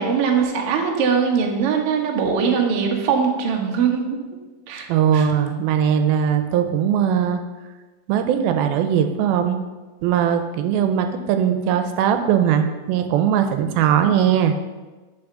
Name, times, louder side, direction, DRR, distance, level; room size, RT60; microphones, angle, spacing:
voice 1, 0.0-4.2 4.7-4.9 5.1-5.3, right 6 dB, 70° right, 1 dB, 1.3 m, -21 dB
voice 2, 4.9-7.4 8.1-9.6 10.0-14.6, right 8 dB, 85° right, 7 dB, 2.5 m, -19 dB
7.1 x 5.6 x 6.9 m, 1.2 s
omnidirectional pair, 4.3 m